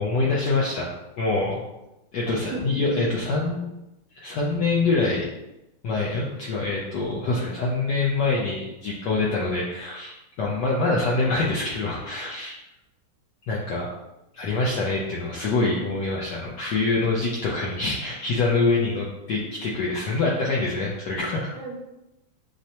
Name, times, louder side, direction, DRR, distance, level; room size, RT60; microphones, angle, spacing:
voice 1, 0.0-1.6 2.1-3.7 4.1-5.3 5.8-12.6 13.4-13.9 14.3-21.5, left 3 dB, 75° left, -4 dB, 1.0 m, -25 dB
voice 2, 2.2-2.6 3.4-3.5 16.4-16.6 19.6-19.7 21.5-21.8, right 4 dB, 70° right, -1 dB, 1.4 m, -38 dB
6.2 x 2.1 x 2.8 m, 0.93 s
omnidirectional pair, 2.4 m